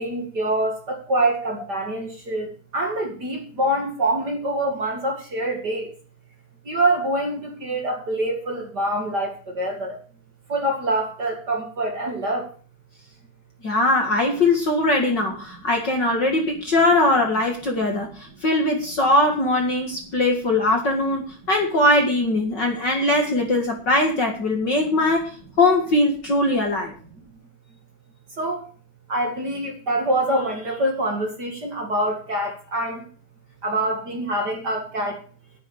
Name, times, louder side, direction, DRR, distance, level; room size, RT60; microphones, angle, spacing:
voice 1, 0.0-2.5 2.7-5.9 6.7-9.3 9.6-10.0 10.5-12.4 28.4-28.6 29.1-33.0 33.6-35.2, right 1 dB, 35° right, 2 dB, 2.5 m, -25 dB
voice 2, 13.6-25.3 25.6-26.9, left 2 dB, 40° left, 2 dB, 2.2 m, -21 dB
11.0 x 10.0 x 6.6 m, 0.40 s
omnidirectional pair, 3.6 m